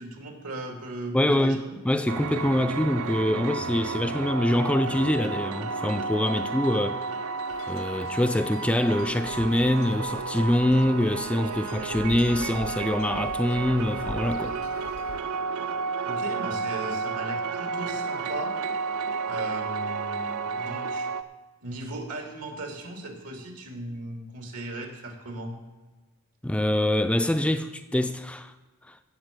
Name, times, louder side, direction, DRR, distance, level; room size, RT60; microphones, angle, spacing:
voice 1, 0.0-1.8 16.0-18.6 19.3-21.1 21.6-25.6, right 2 dB, 85° right, 2.4 m, -37 dB
voice 2, 1.1-7.1 7.7-14.5 26.4-28.5 28.9-29.0, left 1 dB, 5° left, 0.3 m, -25 dB
sound 1, 2.1-21.2, right 4 dB, 65° right, 0.5 m, -32 dB
sound 2, 7.5-15.2, left 3 dB, 65° left, 0.6 m, -44 dB
17.0 x 7.0 x 5.2 m
head